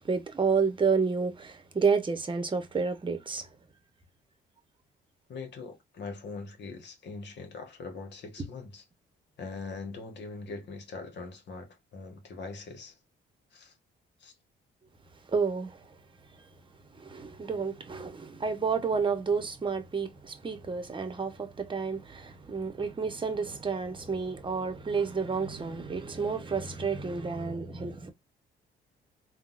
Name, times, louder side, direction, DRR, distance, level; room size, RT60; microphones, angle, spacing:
voice 1, 0.1-3.4 15.3-15.7 17.0-28.1, right 5 dB, 25° right, 0.9 m, -30 dB
voice 2, 5.3-8.8 9.4-12.9 13.5-13.7 14.2-14.3, left 4 dB, 60° left, 1.3 m, -42 dB
3.7 x 2.3 x 2.4 m
cardioid pair, 90°, 20 cm